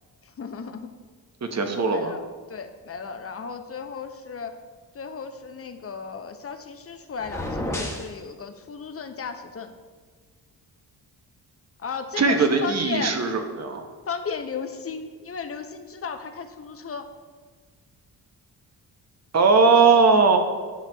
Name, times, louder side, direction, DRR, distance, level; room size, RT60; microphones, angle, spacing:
voice 1, 0.2-0.9 1.8-2.2 2.5-4.6 4.9-9.7 11.8-13.2 14.1-17.1, left 5 dB, 35° left, 7 dB, 0.6 m, -35 dB
voice 2, 1.5-2.1 12.2-13.8 19.3-20.4, right 4 dB, 40° right, 5 dB, 0.9 m, -19 dB
sound 1, 7.2-8.1, left 1 dB, 5° left, 1.2 m, -30 dB
10.5 x 5.8 x 2.3 m, 1.5 s
cardioid pair, 65°, 40 cm